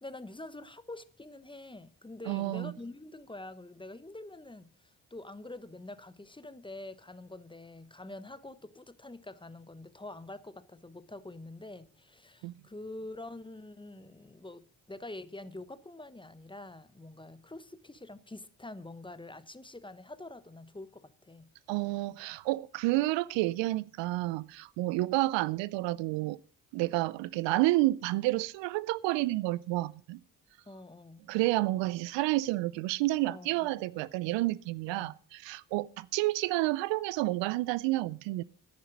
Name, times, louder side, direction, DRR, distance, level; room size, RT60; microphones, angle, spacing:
voice 1, 0.0-21.5 30.7-31.3 33.3-34.1 34.9-35.2, left 2 dB, 10° left, 0.9 m, -46 dB
voice 2, 2.3-2.7 12.4-12.5 21.7-26.4 26.7-30.2 31.3-38.4, right 19 dB, 80° right, 0.5 m, -30 dB
10.0 x 9.6 x 5.1 m
supercardioid pair, 55°, 43 cm